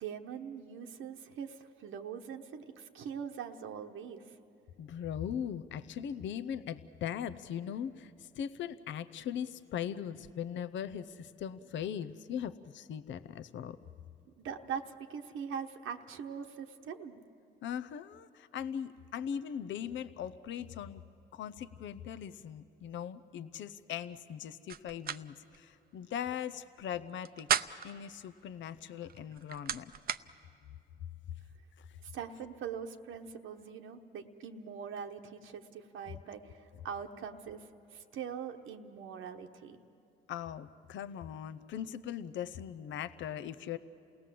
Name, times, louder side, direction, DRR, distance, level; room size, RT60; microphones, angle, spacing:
voice 1, 0.0-4.2 14.4-17.3 32.0-37.6 37.9-39.8, right 7 dB, 85° right, 4 dB, 1.1 m, -42 dB
voice 2, 4.8-13.8 17.6-21.0 21.3-27.5 27.8-29.9 31.8-31.9 40.3-43.8, left 9 dB, 70° left, 13 dB, 0.7 m, -40 dB
sound 1, 24.7-25.2 25.5-25.6 27.1-28.0 29.1-30.2, right 8 dB, 50° right, 0.6 m, -34 dB
28.5 x 18.0 x 7.6 m, 2.7 s
cardioid pair, 90°, 20 cm